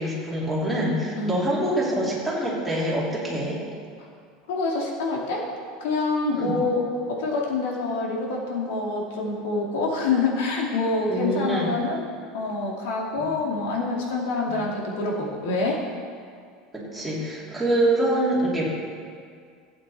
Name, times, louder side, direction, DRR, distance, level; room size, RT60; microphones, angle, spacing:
voice 1, 0.0-3.6 6.3-6.5 11.1-11.7 13.2-13.3 14.5-14.6 16.7-18.7, right 1 dB, ahead, -7 dB, 2.9 m, -25 dB
voice 2, 1.2-1.5 4.0-4.1 4.5-5.5 5.8-15.8, left 3 dB, 85° left, -1 dB, 2.6 m, -26 dB
16.0 x 8.1 x 4.2 m, 2.2 s
supercardioid pair, 150°, 0 cm